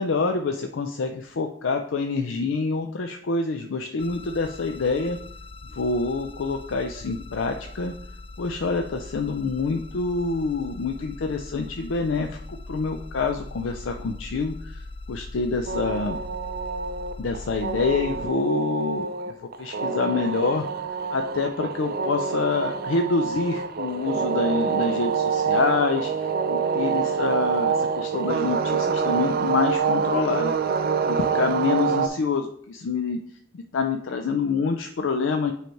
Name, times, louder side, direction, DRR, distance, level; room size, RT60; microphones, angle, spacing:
voice 1, 0.0-5.2 5.7-7.9 8.4-16.2 17.2-20.6 21.1-30.5 31.0-33.2 33.5-35.5, left 4 dB, 90° left, 5 dB, 0.5 m, -26 dB
sound 1, 4.0-18.3, left 2 dB, 30° left, 0.3 m, -40 dB
sound 2, 15.7-32.1, right 6 dB, 50° right, 0.5 m, -26 dB
7.7 x 3.3 x 4.5 m, 0.65 s
head